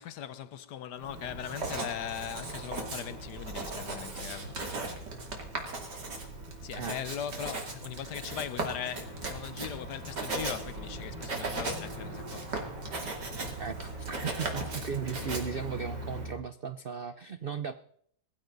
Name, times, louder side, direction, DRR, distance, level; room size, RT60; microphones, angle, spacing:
voice 1, 0.0-5.1 6.1-12.6, left 9 dB, 65° left, 1.3 m, -40 dB
Writing, 1.0-16.4, right 2 dB, 65° right, 3.4 m, -37 dB
voice 2, 13.6-17.7, right 6 dB, 90° right, 0.5 m, -36 dB
21.0 x 15.0 x 4.0 m
omnidirectional pair, 2.0 m